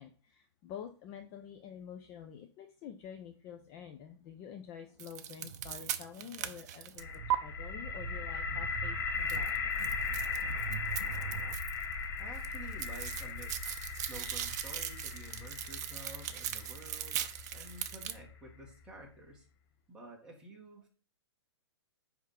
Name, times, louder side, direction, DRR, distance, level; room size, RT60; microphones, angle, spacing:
voice 1, 0.0-9.0 9.3-9.6, left 8 dB, 20° left, 6 dB, 0.5 m, -48 dB
sound 1, 5.0-7.4 9.3-11.9 12.2-18.1, right 12 dB, 40° right, 0.7 m, -39 dB
sound 2, 5.4-11.6, right 11 dB, 75° right, 0.4 m, -45 dB
sound 3, 7.0-18.8, left 5 dB, 50° left, 1.5 m, -38 dB
voice 2, 12.2-19.5 19.9-20.9, right 2 dB, 5° right, -2 dB, 1.8 m, -51 dB
9.6 x 3.6 x 5.8 m, 0.38 s
hypercardioid pair, 165°, 14 cm